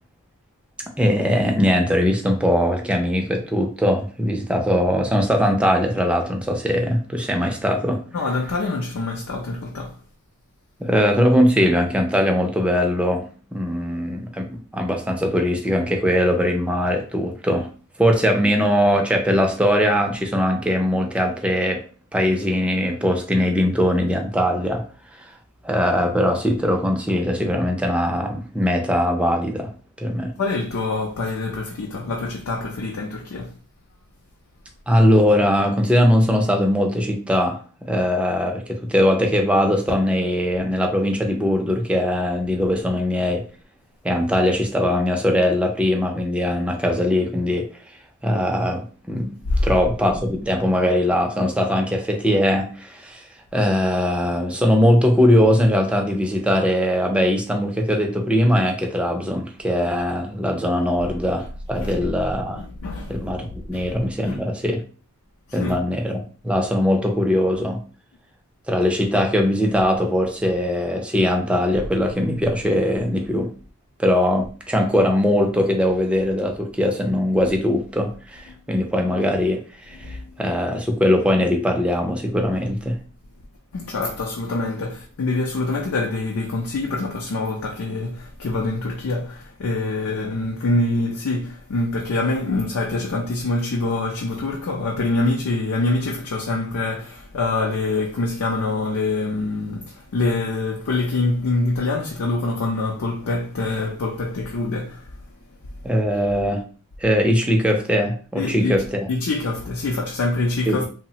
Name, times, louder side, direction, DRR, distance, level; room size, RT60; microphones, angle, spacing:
voice 1, 1.0-8.0 10.8-13.2 13.5-17.7 18.0-21.8 22.1-24.8 25.2-25.3 25.6-29.7 30.0-30.3 34.9-43.4 44.0-47.7 48.2-49.3 49.6-53.2 53.5-62.6 63.1-64.8 65.5-67.8 68.7-73.5 74.0-83.0 105.8-106.6 107.0-109.1 110.7-110.9, equal, 5° right, 0.4 m, -20 dB
voice 2, 8.1-10.0 30.4-33.5 49.5-49.9 61.7-62.1 62.5-63.3 63.7-63.9 64.2-64.4 65.5-65.8 80.0-80.2 83.7-105.1 108.3-110.9, left 2 dB, 65° left, 0.4 m, -25 dB
3.1 x 2.0 x 2.7 m
head